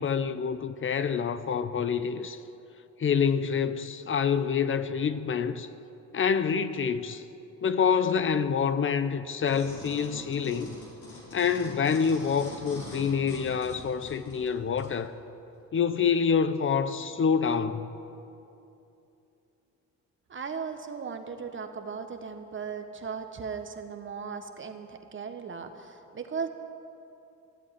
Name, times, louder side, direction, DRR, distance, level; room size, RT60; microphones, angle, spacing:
voice 1, 0.0-2.4 3.0-5.7 6.1-7.2 7.6-10.7 11.3-15.1 15.7-17.9, left 6 dB, 40° left, 0.7 m, -27 dB
sound 1, 9.5-15.0 15.5-15.6, left 2 dB, 80° left, 3.7 m, -44 dB
voice 2, 20.3-26.5, right 6 dB, 40° right, 1.3 m, -37 dB
14.5 x 8.1 x 9.7 m
cardioid pair, 90°, 30 cm